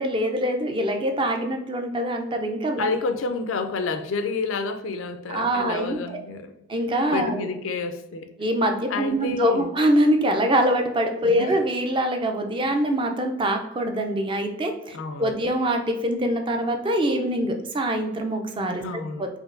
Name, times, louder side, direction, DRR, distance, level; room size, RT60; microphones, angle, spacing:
voice 1, 0.0-2.9 5.3-6.2 6.7-7.5 8.4-18.8 19.2-19.3, right 1 dB, 25° right, 4 dB, 0.4 m, -24 dB
voice 2, 2.8-6.5 7.1-8.3 8.9-9.7 11.2-11.6 14.9-15.3 18.8-19.3, left 4 dB, 75° left, 8 dB, 0.4 m, -29 dB
5.0 x 2.6 x 2.5 m, 0.89 s
head